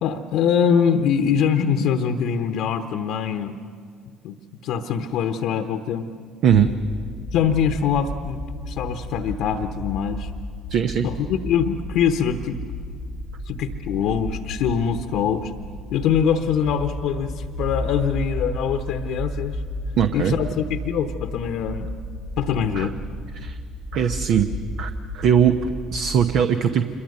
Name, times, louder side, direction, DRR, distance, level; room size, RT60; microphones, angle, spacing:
voice 1, 0.0-3.6 4.2-4.4 4.6-6.1 7.3-8.4 8.7-10.3 11.0-12.6 13.4-15.5 15.9-19.6 20.1-21.9 22.4-22.9, left 7 dB, 65° left, 7 dB, 1.0 m, -23 dB
sound 1, 6.5-26.2, left 1 dB, 85° right, 3.8 m, -33 dB
voice 2, 10.7-11.1 20.0-20.3 22.7-22.9 23.3-23.6 23.9-24.5 24.8-26.8, right 8 dB, 60° right, 8 dB, 0.9 m, -20 dB
27.5 x 22.5 x 6.7 m, 2.1 s
hypercardioid pair, 60°, 0 cm